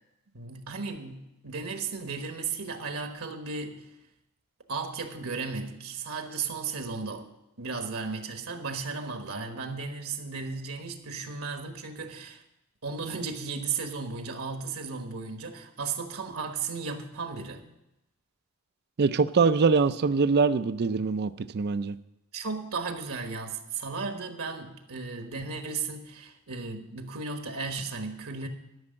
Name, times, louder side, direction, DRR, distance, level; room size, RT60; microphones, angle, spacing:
voice 1, 0.3-3.8 4.7-7.3 7.6-12.4 12.8-17.7 22.3-28.5, right 4 dB, 70° right, 5 dB, 1.3 m, -35 dB
voice 2, 19.0-22.0, right 4 dB, 45° right, 14 dB, 0.4 m, -23 dB
13.0 x 6.1 x 8.6 m, 0.90 s
head